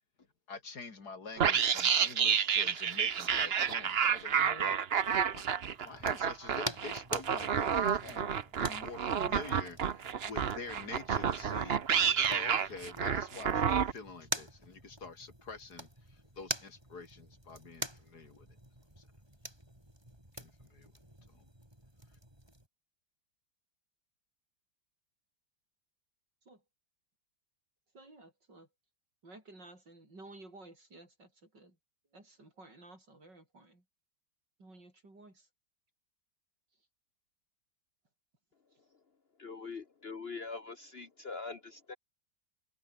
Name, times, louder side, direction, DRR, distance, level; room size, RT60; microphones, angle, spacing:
voice 1, 0.5-4.8 5.3-5.5 5.8-11.8 12.3-18.5 19.0-19.1 20.4-20.9 21.3-21.5, left 4 dB, 65° left, 3.4 m, -47 dB
sound 1, 1.4-13.9, right 7 dB, 45° right, 1.0 m, -30 dB
sound 2, 5.7-22.7, right 1 dB, 15° right, 5.7 m, -46 dB
voice 2, 27.9-28.7 29.2-31.8 32.1-33.8 34.6-35.5, right 2 dB, 85° right, 8.1 m, -54 dB
voice 3, 39.4-42.0, left 4 dB, 40° left, 1.0 m, -43 dB
omnidirectional pair, 1.9 m